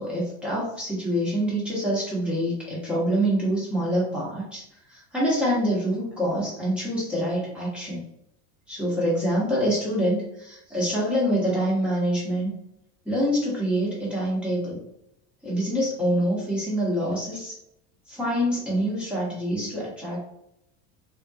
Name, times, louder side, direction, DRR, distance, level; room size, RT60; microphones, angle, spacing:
voice 1, 0.0-4.6 4.9-8.0 8.7-12.5 13.0-14.8 15.4-17.5 18.1-20.2, equal, 5° right, -6 dB, 0.8 m, -26 dB
3.5 x 2.7 x 2.3 m, 0.79 s
cardioid pair, 170°, 35 cm